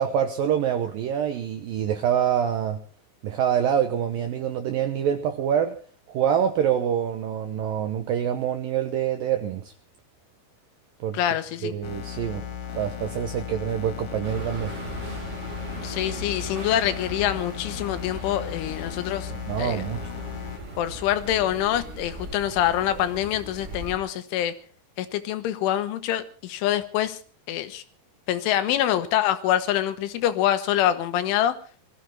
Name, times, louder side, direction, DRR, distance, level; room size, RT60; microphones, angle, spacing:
voice 1, 0.0-2.8 3.2-5.8 6.1-9.7 11.0-11.2 11.6-12.4 12.7-14.8 19.3-20.1, right 9 dB, 80° right, 6 dB, 2.0 m, -26 dB
voice 2, 11.1-11.7 15.8-19.3 19.6-19.8 20.8-24.5 25.0-27.2 27.5-27.8 28.3-31.6, left 12 dB, 90° left, 11 dB, 3.7 m, -25 dB
sound 1, 11.8-20.6, left 8 dB, 55° left, 3.2 m, -36 dB
sound 2, 14.2-24.0, right 1 dB, 35° right, 1.1 m, -39 dB
20.5 x 14.5 x 4.5 m, 0.39 s
omnidirectional pair, 5.5 m